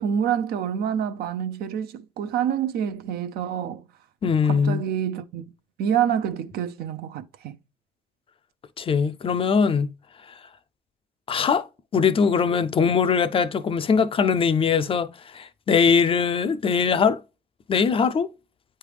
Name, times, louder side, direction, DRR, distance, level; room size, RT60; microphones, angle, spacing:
voice 1, 0.0-3.8 4.4-5.4 5.8-7.6, right 9 dB, 65° right, 0.6 m, -27 dB
voice 2, 4.2-4.8 8.8-9.9 11.3-11.7 11.9-17.2 17.7-18.3, left 6 dB, 35° left, 0.4 m, -21 dB
9.0 x 3.3 x 3.3 m
cardioid pair, 110°, 17 cm